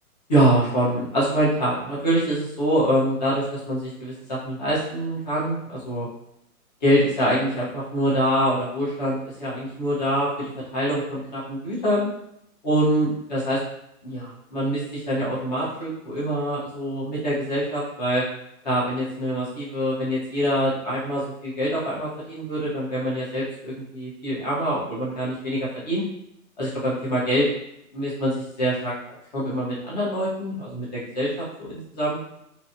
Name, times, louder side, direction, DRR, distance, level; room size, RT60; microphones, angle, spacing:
voice 1, 0.3-6.1 6.8-12.1 12.6-13.6 14.0-18.2 18.6-26.0 26.6-27.5 27.9-28.9 29.3-32.2, equal, 30° left, -7 dB, 1.1 m, -25 dB
2.9 x 2.8 x 2.8 m, 0.77 s
hypercardioid pair, 165°, 44 cm